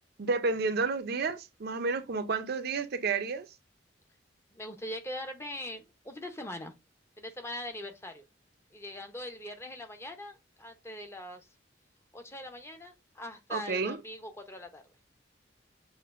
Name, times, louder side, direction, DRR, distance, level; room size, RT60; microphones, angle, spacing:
voice 1, 0.2-3.5 13.5-14.0, right 4 dB, 55° right, 0.5 m, -30 dB
voice 2, 4.5-6.7 7.2-8.2 8.7-11.5 12.1-14.8, left 1 dB, 15° left, 0.6 m, -42 dB
6.5 x 2.5 x 2.4 m
head